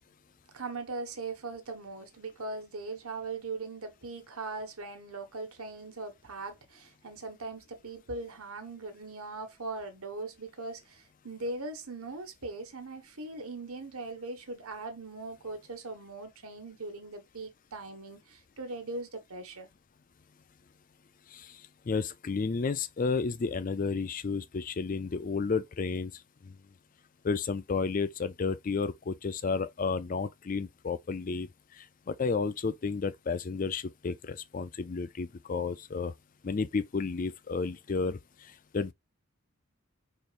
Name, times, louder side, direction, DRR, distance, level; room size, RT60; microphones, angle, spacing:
voice 1, 0.5-19.7, right 3 dB, 75° right, 1.3 m, -40 dB
voice 2, 21.9-26.1 26.4-26.5 27.2-31.5 31.8-36.1 36.4-38.2 38.7-38.9, left 4 dB, 35° left, 0.4 m, -32 dB
5.0 x 4.3 x 2.5 m
head